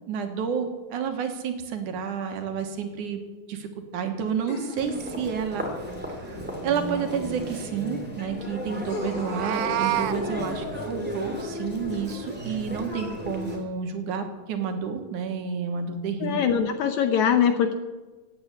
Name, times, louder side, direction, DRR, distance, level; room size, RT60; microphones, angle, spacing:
voice 1, 0.1-3.2 3.5-16.6, right 6 dB, 65° right, 5 dB, 2.6 m, -30 dB
sound 1, 2.4-2.5 4.5-5.4 7.3-7.4 8.9-9.6, left 4 dB, 50° left, 1.2 m, -37 dB
Human voice, 4.7-13.6, left 1 dB, 5° right, 2.2 m, -34 dB
Meow, 9.1-10.2, right 12 dB, 85° right, 2.5 m, -27 dB
voice 2, 16.2-17.7, left 8 dB, 75° left, 8 dB, 1.8 m, -22 dB
16.5 x 9.6 x 8.1 m, 1.3 s
omnidirectional pair, 4.0 m